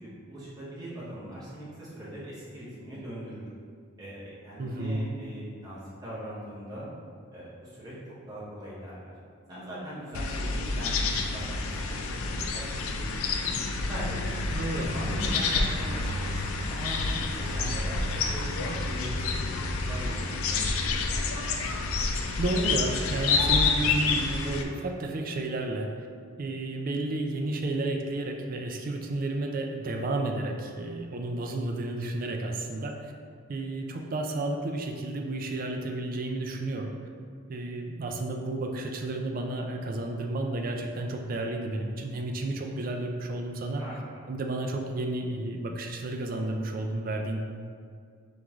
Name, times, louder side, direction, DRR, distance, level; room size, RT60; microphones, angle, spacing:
voice 1, 0.0-3.5 4.0-6.9 7.3-7.9 8.3-9.1 9.5-13.6 13.9-14.4 14.7-18.0 18.3-21.1 43.8-44.2, right 1 dB, 20° right, -9 dB, 0.9 m, -40 dB
voice 2, 4.6-5.1 14.5-14.9 22.4-25.9 26.4-33.1 33.5-36.9 37.5-43.8 44.3-47.4, right 2 dB, 40° right, 2 dB, 0.4 m, -32 dB
sound 1, 10.1-24.6, left 3 dB, 80° left, 0.4 m, -28 dB
3.7 x 3.0 x 3.5 m, 2.2 s
head